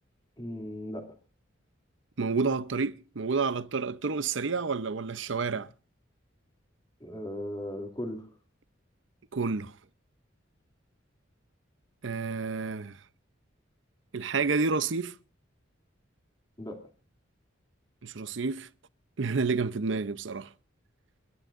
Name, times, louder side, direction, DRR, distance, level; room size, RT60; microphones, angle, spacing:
voice 1, 0.4-1.1 7.0-8.3 16.6-16.8, left 1 dB, 20° left, 2.8 m, -37 dB
voice 2, 2.2-5.7 9.3-9.7 12.0-13.0 14.1-15.1 18.0-18.7 19.2-20.5, right 4 dB, 65° right, 0.7 m, -29 dB
28.5 x 13.0 x 2.6 m
head